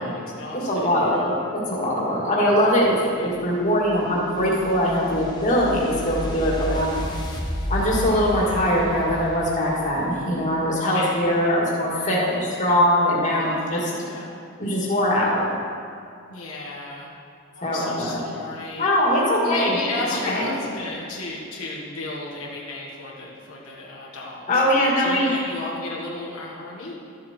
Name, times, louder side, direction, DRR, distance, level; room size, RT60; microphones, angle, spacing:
voice 1, 0.0-1.3 3.1-3.3 10.9-11.2 13.4-14.3 16.3-17.1 17.5-18.9 19.4-24.6 25.0-27.0, left 2 dB, 85° left, -4 dB, 1.8 m, -34 dB
voice 2, 0.7-6.9 7.7-13.9 14.6-15.4 17.6-18.2 18.8-19.7 20.3-20.4 24.5-25.4, equal, 35° left, -5 dB, 2.2 m, -22 dB
sound 1, 3.3-10.6, equal, 20° left, 1.2 m, -32 dB
13.0 x 7.5 x 4.5 m, 2.4 s
head